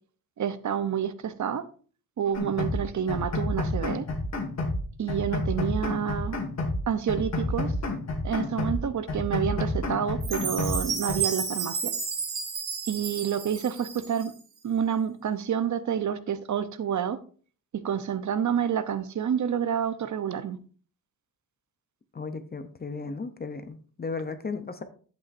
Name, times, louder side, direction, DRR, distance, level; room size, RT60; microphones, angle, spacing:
voice 1, 0.4-1.6 2.2-4.1 5.0-6.4 6.9-7.7 8.2-11.9 12.9-14.3 14.6-17.2 17.8-20.6, right 8 dB, 50° right, 0.7 m, -28 dB
sound 1, 2.3-2.8 3.1-4.8 5.1-6.8 7.1-8.8 9.1-10.8 11.1-11.2, left 2 dB, 45° left, 1.9 m, -30 dB
Chime, 10.2-14.4, right 6 dB, 90° right, 2.5 m, -32 dB
voice 2, 22.1-24.8, left 4 dB, 25° left, 0.6 m, -35 dB
11.0 x 8.4 x 2.6 m
wide cardioid pair, 180°, 37 cm